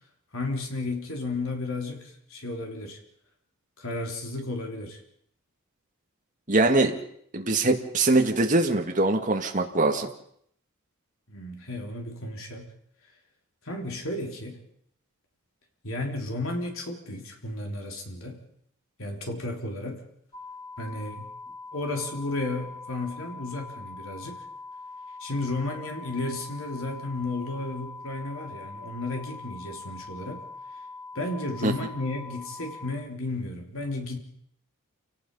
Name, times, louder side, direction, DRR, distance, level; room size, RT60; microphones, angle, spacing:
voice 1, 0.3-3.0 3.8-5.0 11.3-12.7 13.6-14.6 15.8-18.4 19.0-20.1 20.8-21.3 21.7-24.4 25.2-30.4 31.1-34.2, left 2 dB, 65° left, 2 dB, 3.7 m, -33 dB
voice 2, 6.5-6.9 7.3-10.1 31.6-31.7, right 2 dB, 35° right, 3 dB, 2.0 m, -22 dB
sound 1, 20.3-32.9, left 3 dB, 20° left, 2.2 m, -42 dB
28.5 x 18.0 x 5.5 m, 0.67 s
head